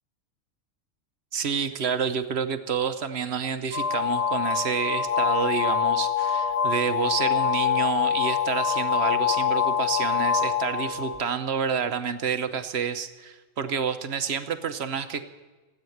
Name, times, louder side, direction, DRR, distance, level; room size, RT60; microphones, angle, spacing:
voice 1, 1.3-15.2, right 6 dB, 55° right, 10 dB, 1.0 m, -29 dB
sound 1, 3.7-11.3, left 8 dB, 45° left, 0.5 m, -25 dB
16.0 x 8.8 x 9.2 m, 1.2 s
omnidirectional pair, 1.4 m